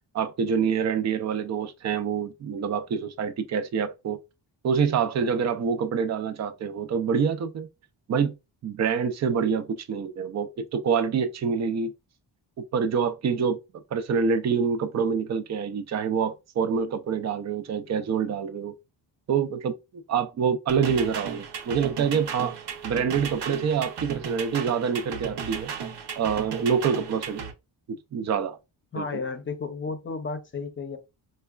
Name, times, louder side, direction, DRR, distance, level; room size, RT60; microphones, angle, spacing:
voice 1, 0.1-4.2 4.6-7.7 8.1-8.3 8.6-11.9 12.7-13.6 13.9-18.7 19.3-22.6 22.8-25.7 26.2-27.4 27.9-28.6 28.9-29.0, right 6 dB, 40° right, 0.5 m, -26 dB
sound 1, 20.7-27.5, right 6 dB, 65° right, 0.8 m, -35 dB
voice 2, 28.9-31.0, left 4 dB, 30° left, 0.6 m, -33 dB
4.7 x 2.2 x 2.3 m
wide cardioid pair, 155°, 43 cm